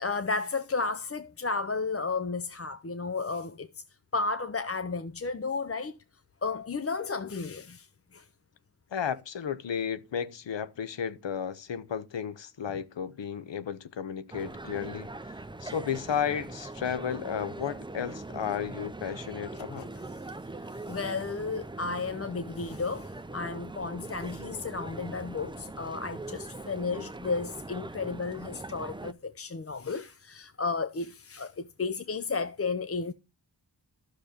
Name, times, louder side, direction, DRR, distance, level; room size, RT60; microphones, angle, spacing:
voice 1, 0.0-3.8 4.1-6.0 6.4-8.3 19.7-19.8 20.6-33.1, left 4 dB, 35° left, 0.6 m, -33 dB
voice 2, 8.9-15.3 15.6-19.9, left 8 dB, 90° left, 0.8 m, -33 dB
sound 1, 14.3-29.1, right 2 dB, 10° right, 0.5 m, -41 dB
12.5 x 6.6 x 4.2 m
wide cardioid pair, 65°, 43 cm